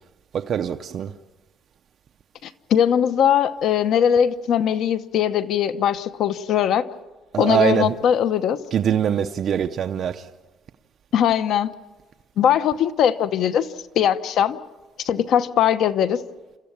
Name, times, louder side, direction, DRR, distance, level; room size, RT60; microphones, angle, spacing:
voice 1, 0.3-1.1 7.3-7.9 8.7-10.3, right 8 dB, 45° right, 0.6 m, -23 dB
voice 2, 2.4-6.8 7.4-8.6 11.1-11.7 12.4-13.7 13.9-14.6 15.0-16.2, left 9 dB, 60° left, 0.9 m, -20 dB
28.0 x 13.5 x 8.6 m
cardioid pair, 160°, 0 cm